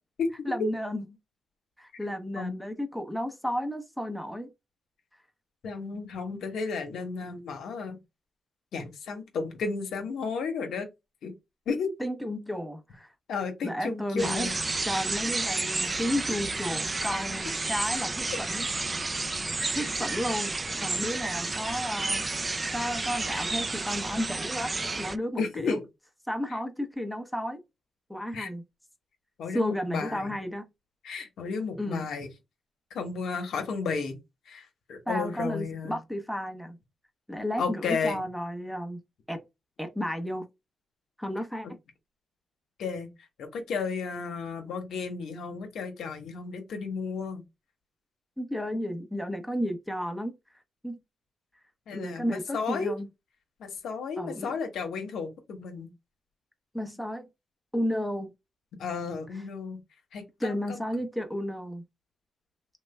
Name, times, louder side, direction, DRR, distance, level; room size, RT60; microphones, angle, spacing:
voice 1, 0.4-1.1 1.8-4.5 12.0-13.1 13.6-14.5 14.9-18.7 19.7-22.2 22.7-24.7 25.0-25.8 26.3-27.6 28.1-28.6 29.5-30.6 31.8-32.1 35.1-36.8 37.3-39.0 39.3-39.4 39.8-40.4 41.2-41.7 48.4-50.3 50.8-51.0 51.9-53.1 54.2-54.5 56.7-57.3 57.7-58.3 60.4-61.8, equal, 5° left, 0.7 m, -32 dB
voice 2, 5.6-8.0 8.7-10.9 11.2-11.3 11.7-11.9 13.3-14.6 19.7-19.9 25.4-25.8 26.5-26.6 28.3-28.5 29.4-30.4 31.0-32.3 32.9-34.2 34.5-36.0 37.6-38.2 42.8-43.1 43.4-47.4 51.9-52.9 53.6-55.9 58.8-59.8 60.1-60.8, left 5 dB, 85° left, 0.9 m, -33 dB
sound 1, 14.2-25.2, right 3 dB, 30° right, 0.3 m, -31 dB
3.2 x 2.1 x 3.2 m
cardioid pair, 85°, 0 cm